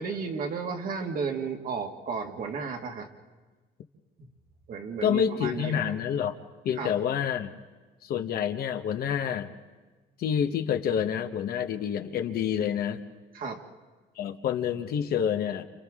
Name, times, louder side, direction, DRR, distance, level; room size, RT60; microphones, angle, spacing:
voice 1, 0.0-3.1 4.2-4.3 4.7-5.9 6.7-6.9 13.3-13.6, right 5 dB, 55° right, 2 dB, 2.1 m, -33 dB
voice 2, 5.0-6.3 6.6-7.5 8.0-9.5 10.2-13.0 14.2-15.6, left 8 dB, 65° left, 6 dB, 1.3 m, -28 dB
30.0 x 28.5 x 3.7 m, 1.3 s
cardioid pair, 110°, 17 cm